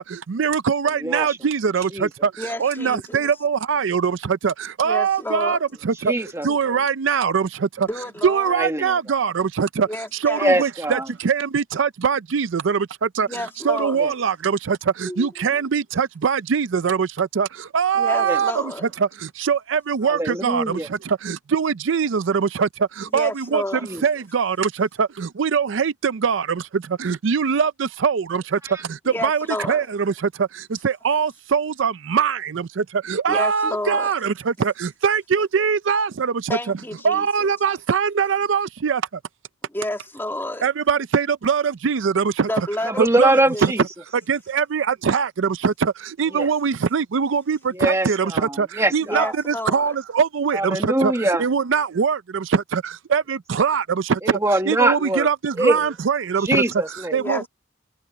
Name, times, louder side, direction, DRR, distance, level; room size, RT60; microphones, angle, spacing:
voice 1, 0.0-6.1 6.4-7.9 8.2-13.3 13.6-36.8 37.0-39.0 40.6-42.7 43.0-43.3 43.6-43.7 44.3-54.2 54.7-56.6 57.1-57.5, right 6 dB, 70° right, 0.5 m, -22 dB
voice 2, 1.0-1.4 1.9-2.1 6.0-6.8 8.5-9.0 10.4-11.1 13.9-14.1 18.2-18.4 20.0-20.9 23.8-24.0 28.6-28.8 42.8-43.8 46.3-46.5 47.7-49.4 50.5-51.5 54.2-55.3 55.6-55.9 56.4-57.2, right 1 dB, 15° right, 1.7 m, -23 dB
voice 3, 2.4-3.2 4.8-5.6 7.8-8.5 9.9-10.5 13.2-14.0 15.1-15.3 17.9-18.9 23.1-23.8 29.1-29.9 33.3-34.1 36.5-37.5 39.7-40.7 42.5-43.0 43.5-43.6 49.1-50.0 57.2-57.5, left 1 dB, 10° left, 2.7 m, -30 dB
head